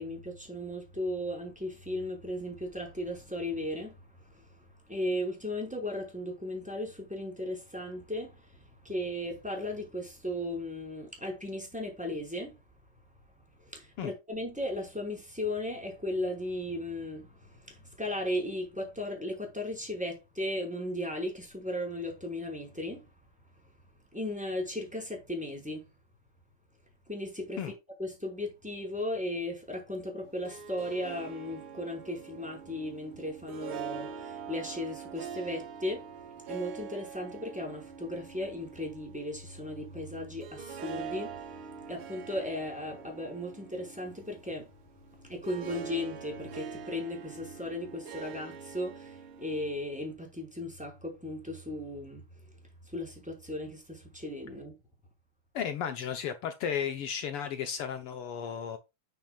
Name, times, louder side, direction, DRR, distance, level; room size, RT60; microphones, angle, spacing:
voice 1, 0.0-12.6 13.6-23.1 24.1-25.8 27.1-27.7 28.0-44.7 45.2-52.2 52.8-54.7, left 1 dB, ahead, 4.8 m, -36 dB
Harp, 30.2-50.1, right 6 dB, 65° right, 1.3 m, -44 dB
voice 2, 55.5-58.8, left 8 dB, 80° left, 1.2 m, -34 dB
10.0 x 9.4 x 2.4 m
omnidirectional pair, 3.9 m